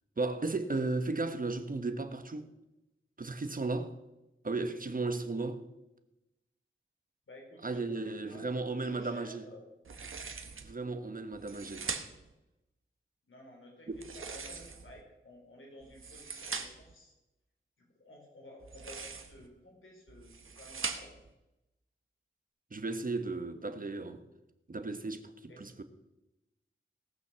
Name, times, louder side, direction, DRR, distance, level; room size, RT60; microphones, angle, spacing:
voice 1, 0.2-2.5 3.2-4.0 4.4-5.6 7.6-9.5 10.6-11.9 13.9-14.0 22.7-24.2 24.7-25.8, right 3 dB, 40° right, 1.2 m, -35 dB
voice 2, 7.3-8.0 8.3-9.7 13.3-17.1 18.0-21.1 25.5-25.7, left 1 dB, 70° left, 4.4 m, -53 dB
sound 1, 9.8-10.7 11.3-12.3 13.9-15.0 15.8-16.9 18.6-19.5 20.1-21.3, right 5 dB, 80° right, 1.2 m, -41 dB
18.0 x 6.3 x 6.9 m
wide cardioid pair, 85°, 21 cm